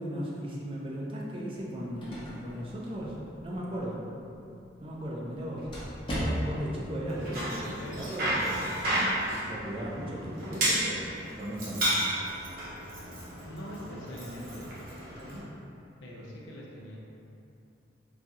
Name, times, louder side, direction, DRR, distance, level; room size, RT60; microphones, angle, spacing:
voice 1, 0.0-4.0 4.8-5.7 6.2-8.8 9.3-11.1 11.4-11.9 15.1-15.4, equal, 30° right, -4 dB, 0.4 m, -36 dB
sound 1, 1.6-6.8, equal, 25° left, 0.7 m, -39 dB
Bicycle, 7.1-15.4, right 1 dB, 50° right, 0.8 m, -32 dB
voice 2, 13.4-14.7 16.0-17.0, equal, 75° left, -3 dB, 0.6 m, -42 dB
4.0 x 2.7 x 2.3 m, 2.7 s
head